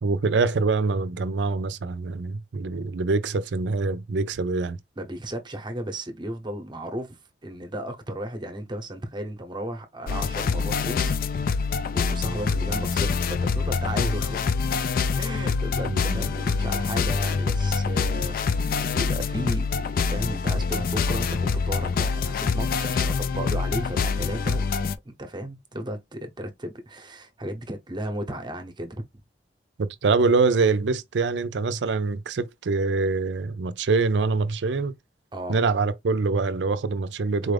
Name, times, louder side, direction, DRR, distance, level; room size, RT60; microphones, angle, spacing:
voice 1, 0.0-4.8 15.8-16.2 29.8-35.0 35.5-37.5, right 4 dB, 90° right, 0.5 m, -24 dB
voice 2, 5.0-11.1 11.9-14.6 15.2-29.0 35.3-35.6, right 1 dB, 25° right, 0.8 m, -34 dB
sound 1, 10.1-25.0, left 5 dB, 55° left, 0.4 m, -25 dB
4.1 x 2.5 x 3.3 m
head